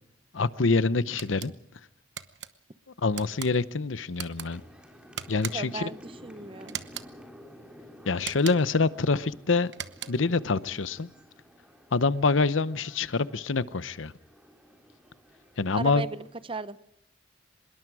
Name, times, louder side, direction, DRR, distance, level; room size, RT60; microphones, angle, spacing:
voice 1, 0.3-1.5 3.0-4.6 5.3-5.9 8.1-9.7 10.1-11.1 11.9-14.1 15.6-16.1, left 4 dB, 85° left, 16 dB, 0.8 m, -26 dB
sound 1, 1.2-1.5 2.2-2.5 3.1-3.5 4.1-4.5 5.2-5.8 6.7-7.1 8.2-8.8 9.7-10.3, right 9 dB, 60° right, 1.0 m, -39 dB
sound 2, 4.4-16.4, equal, 5° right, 3.6 m, -52 dB
voice 2, 5.5-6.8 15.7-16.8, right 3 dB, 30° right, 14 dB, 0.8 m, -36 dB
25.0 x 21.5 x 4.8 m, 0.79 s
head